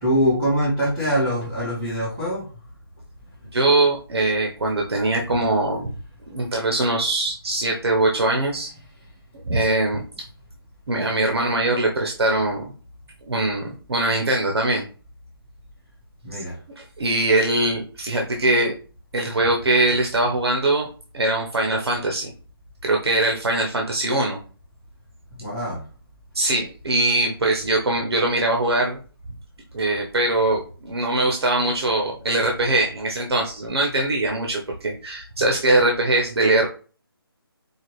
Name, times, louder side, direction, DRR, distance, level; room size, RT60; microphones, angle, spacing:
voice 1, 0.0-2.5 16.2-16.6 25.3-25.8, equal, 15° right, -10 dB, 1.2 m, -23 dB
voice 2, 3.5-5.9 6.3-8.7 9.5-10.0 10.9-12.7 13.2-14.8 16.8-18.7 19.1-20.9 21.1-22.3 22.8-24.4 26.3-29.0 29.7-36.7, right 2 dB, 85° right, 1 dB, 0.8 m, -22 dB
4.7 x 2.6 x 3.1 m, 0.38 s
hypercardioid pair, 170°, 13 cm